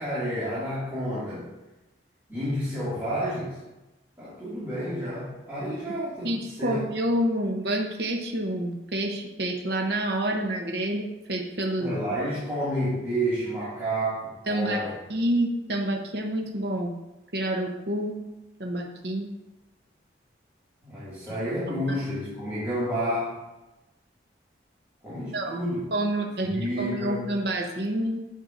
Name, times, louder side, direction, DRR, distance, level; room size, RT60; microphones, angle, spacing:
voice 1, 0.0-1.5 2.3-3.6 4.2-6.3 6.6-6.8 11.8-14.9 20.8-23.4 25.0-25.8 26.5-27.3, equal, 15° right, -13 dB, 2.2 m, -30 dB
voice 2, 6.2-12.0 14.5-16.9 17.3-18.2 18.6-19.3 21.9-22.0 25.3-28.2, right 1 dB, 65° right, 1 dB, 0.9 m, -28 dB
9.1 x 6.4 x 2.6 m, 1.0 s
head